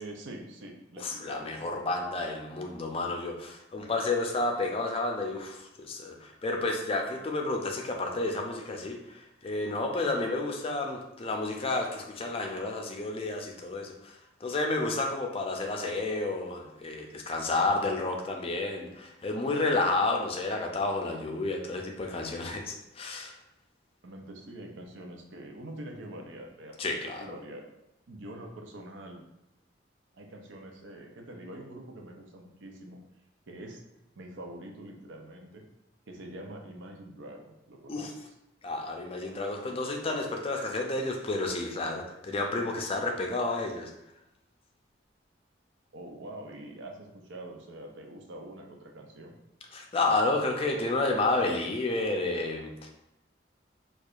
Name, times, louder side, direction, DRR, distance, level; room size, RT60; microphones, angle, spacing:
voice 1, 0.0-1.7 24.0-26.9 27.2-27.6 28.1-29.2 30.1-33.0 33.5-33.8 34.2-35.6 36.1-38.1 45.9-49.4, right 1 dB, 80° right, 2 dB, 0.6 m, -44 dB
voice 2, 1.0-23.4 26.8-27.2 37.9-38.1 38.6-43.9 49.7-52.9, left 2 dB, 30° left, 2 dB, 0.4 m, -31 dB
4.5 x 2.4 x 2.4 m, 0.86 s
head